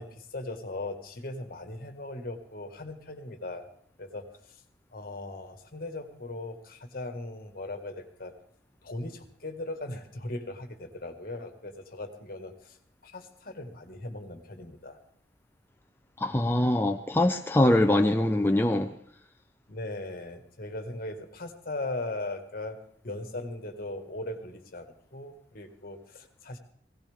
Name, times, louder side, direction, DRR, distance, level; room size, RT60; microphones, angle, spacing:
voice 1, 0.0-3.7 4.0-4.6 4.9-8.3 8.8-12.8 13.0-15.0 19.7-24.9 25.1-26.6, left 2 dB, 55° left, 1.7 m, -38 dB
voice 2, 16.2-18.9, left 1 dB, 15° left, 0.5 m, -23 dB
17.5 x 17.0 x 3.5 m
head